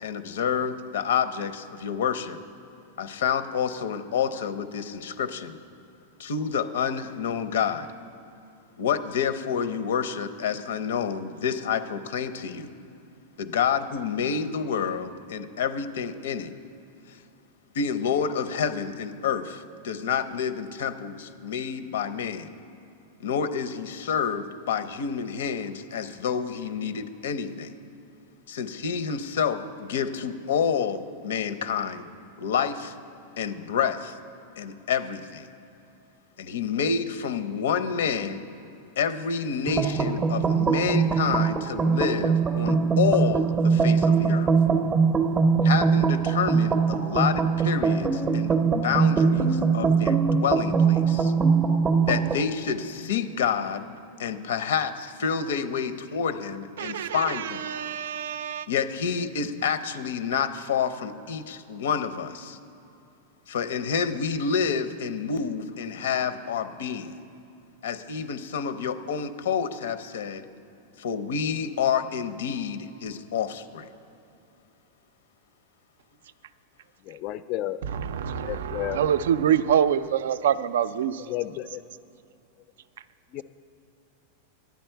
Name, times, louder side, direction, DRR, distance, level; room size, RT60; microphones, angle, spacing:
voice 1, 0.0-2.4 3.0-5.6 6.2-7.9 8.8-12.7 13.4-16.5 17.7-22.5 23.2-27.7 28.5-32.1 32.4-32.9 33.4-34.2 34.6-35.5 36.4-38.4 39.0-44.5 45.6-51.3 52.1-53.8 54.2-57.6 58.7-62.6 63.5-67.1 67.8-70.4 71.0-73.9, left 7 dB, 85° left, 0.6 m, -28 dB
sound 1, 39.7-52.4, right 5 dB, 20° right, 0.5 m, -22 dB
voice 2, 56.8-58.7 77.8-81.2, right 9 dB, 85° right, 0.4 m, -26 dB
voice 3, 77.1-77.8 78.4-79.0 81.3-81.6 83.3-83.4, left 14 dB, 35° left, 0.3 m, -31 dB
11.5 x 9.3 x 4.5 m
supercardioid pair, 165°, 0 cm